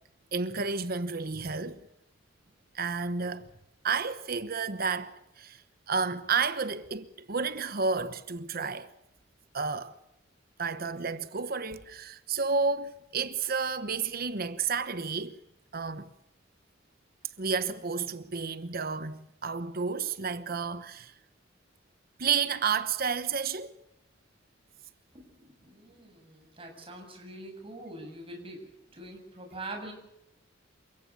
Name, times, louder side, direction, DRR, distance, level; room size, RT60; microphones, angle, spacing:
voice 1, 0.3-1.8 2.7-3.5 3.8-5.6 5.9-8.9 9.5-10.0 10.6-15.4 15.7-16.1 17.4-21.1 22.2-23.7, right 5 dB, 50° right, 1.0 m, -31 dB
voice 2, 25.1-29.9, right 2 dB, 30° right, 7.5 m, -44 dB
28.5 x 16.5 x 7.1 m
head